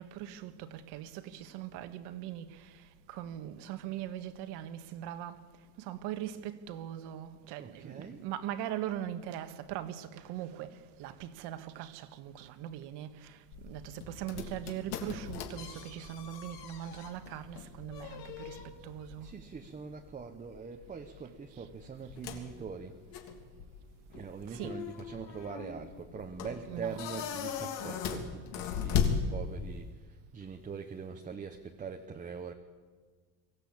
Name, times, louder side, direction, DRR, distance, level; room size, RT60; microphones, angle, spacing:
voice 1, 0.0-2.7 3.1-5.4 5.8-13.4 13.6-19.3 24.5-24.8 26.7-27.0, right 11 dB, 70° right, 1.7 m, -41 dB
voice 2, 7.6-8.2 19.2-23.0 24.1-32.5, right 6 dB, 20° right, 0.9 m, -43 dB
sound 1, 13.5-29.9, left 7 dB, 65° left, 3.2 m, -38 dB
23.0 x 16.0 x 8.6 m
cardioid pair, 165°, 42 cm